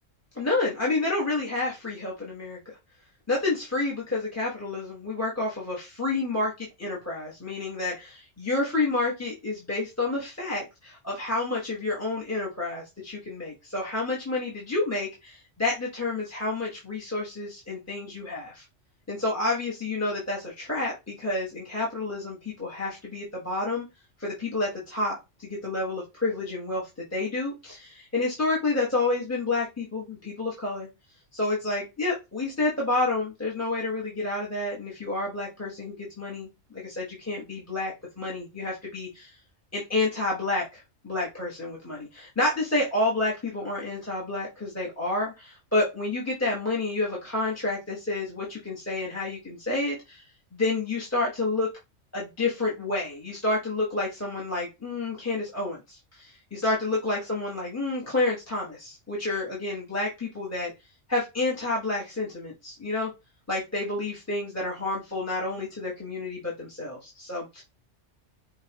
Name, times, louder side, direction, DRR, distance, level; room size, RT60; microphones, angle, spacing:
voice 1, 0.4-2.6 3.3-18.6 19.1-23.9 24.2-26.8 27.1-30.9 31.3-39.3 39.7-50.2 50.5-51.7 52.1-60.7 61.1-63.1 63.5-67.6, left 2 dB, 15° left, -5 dB, 1.1 m, -29 dB
5.2 x 2.4 x 2.9 m, 0.24 s
omnidirectional pair, 1.2 m